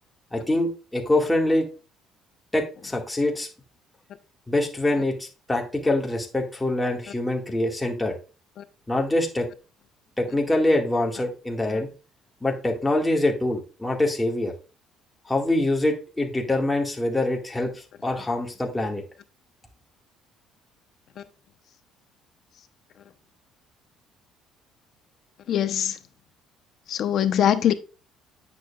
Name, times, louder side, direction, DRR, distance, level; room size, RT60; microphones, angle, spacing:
voice 1, 0.3-1.7 2.5-3.5 4.5-8.1 8.9-9.5 10.2-11.9 12.4-14.5 15.3-19.0, left 1 dB, 10° left, 2.1 m, -24 dB
voice 2, 25.5-26.0 26.9-27.7, left 10 dB, 60° left, 0.9 m, -23 dB
9.4 x 7.3 x 2.5 m
supercardioid pair, 90°, 0 cm